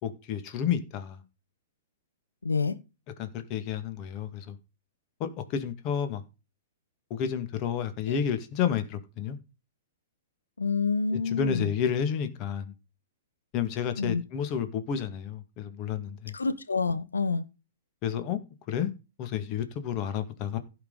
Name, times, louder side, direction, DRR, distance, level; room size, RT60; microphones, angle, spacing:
voice 1, 0.0-1.2 3.2-4.6 5.2-6.2 7.1-9.4 11.1-12.7 13.5-16.3 18.0-18.4 18.7-18.9 19.2-20.6, left 8 dB, 40° left, 2.1 m, -30 dB
voice 2, 2.4-2.7 8.1-8.2 10.6-11.7 14.0-14.2 16.3-17.4, left 4 dB, 90° left, 1.3 m, -28 dB
16.0 x 5.9 x 4.1 m
hypercardioid pair, 115°, 0 cm